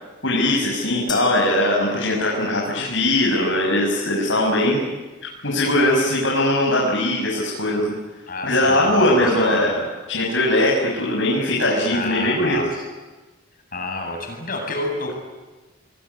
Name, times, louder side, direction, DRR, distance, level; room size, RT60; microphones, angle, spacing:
voice 1, 0.2-4.8 5.4-8.0 8.4-9.8 10.1-12.6, left 1 dB, 70° left, -3 dB, 6.7 m, -20 dB
sound 1, 1.1-2.5, left 5 dB, 20° left, 4.1 m, -36 dB
voice 2, 8.3-9.7 11.9-12.8 13.7-15.1, left 2 dB, 45° left, 2 dB, 7.8 m, -29 dB
27.0 x 22.0 x 9.7 m, 1.2 s
head